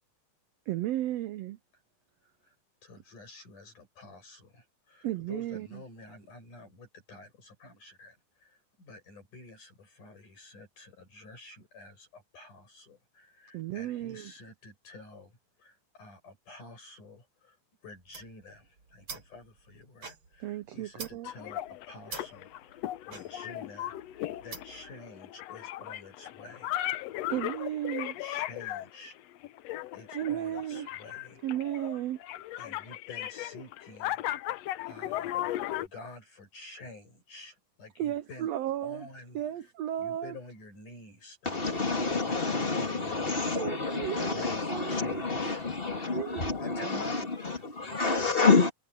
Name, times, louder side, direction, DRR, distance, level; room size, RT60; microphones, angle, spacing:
voice 1, 0.7-1.6 5.0-5.8 13.5-14.3 20.4-21.3 27.3-28.2 30.1-31.0 31.4-32.2 38.0-39.1 39.3-40.4 43.5-44.4 44.7-45.2 46.1-47.2, right 12 dB, 80° right, 1.5 m, -34 dB
voice 2, 2.2-2.6 2.8-17.6 17.8-26.9 28.2-29.2 29.9-31.5 32.6-38.5 38.8-39.7 40.0-43.6 44.2-45.6 46.6-48.4, left 2 dB, 70° left, 9.2 m, -50 dB
sound 1, 17.9-24.9, right 4 dB, 40° right, 4.7 m, -47 dB
sound 2, 21.2-35.9, left 14 dB, 90° left, 1.4 m, -37 dB
voice 3, 41.4-48.7, left 4 dB, 20° left, 2.3 m, -28 dB
omnidirectional pair, 3.8 m